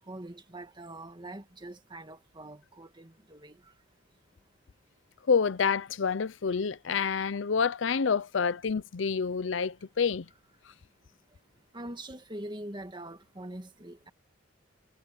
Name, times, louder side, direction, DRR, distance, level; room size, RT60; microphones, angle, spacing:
voice 1, 0.0-3.7 11.7-14.1, right 1 dB, 25° right, 2.0 m, -43 dB
voice 2, 5.3-10.3, left 6 dB, 90° left, 0.6 m, -28 dB
head